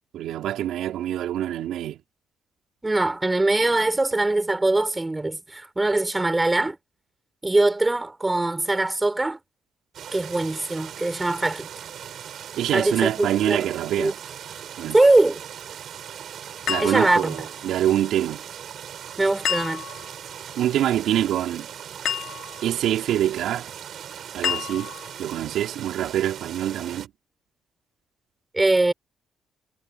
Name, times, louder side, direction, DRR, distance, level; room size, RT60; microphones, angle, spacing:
voice 1, 0.1-2.0 12.6-14.2 14.8-15.0 16.7-18.4 20.6-21.7 22.6-23.7 24.3-24.9 25.2-27.1, right 12 dB, 80° right, 4.3 m, -25 dB
voice 2, 2.8-6.8 7.4-9.4 10.1-11.7 12.7-13.7 14.0-14.1 14.9-15.4 16.8-17.4 19.2-19.8 28.5-28.9, right 2 dB, 15° right, 5.6 m, -22 dB
sound 1, 9.9-27.1, right 9 dB, 65° right, 6.8 m, -39 dB
sound 2, 16.7-17.6 19.5-20.2 22.1-22.7 24.4-25.2, left 10 dB, 70° left, 2.9 m, -30 dB
cardioid pair, 90°, 0 cm